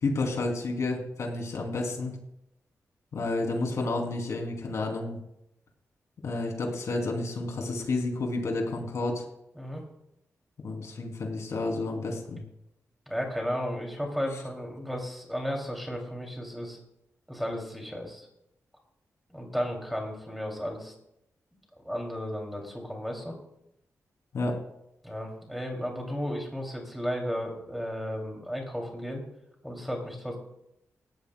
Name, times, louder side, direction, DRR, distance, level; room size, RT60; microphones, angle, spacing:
voice 1, 0.0-2.1 3.1-5.2 6.2-9.2 10.6-12.4 24.3-24.5, left 2 dB, 65° left, 2 dB, 2.9 m, -30 dB
voice 2, 13.1-16.8 17.3-18.3 19.3-20.9 21.8-23.3 25.0-29.2 29.6-30.4, equal, ahead, 1 dB, 2.7 m, -34 dB
18.5 x 14.5 x 2.3 m, 0.79 s
wide cardioid pair, 165°, 6 cm